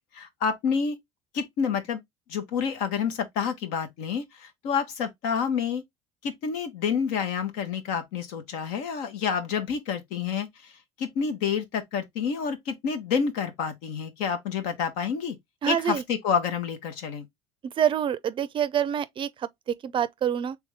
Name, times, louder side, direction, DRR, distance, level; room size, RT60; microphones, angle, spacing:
voice 1, 0.1-1.0 1.3-2.0 2.3-5.8 6.2-10.7 11.0-15.4 15.7-17.3, left 6 dB, 70° left, 1.1 m, -28 dB
voice 2, 15.6-16.0 17.6-20.6, right 9 dB, 40° right, 0.4 m, -27 dB
3.5 x 3.4 x 3.3 m
hypercardioid pair, 80°, 14 cm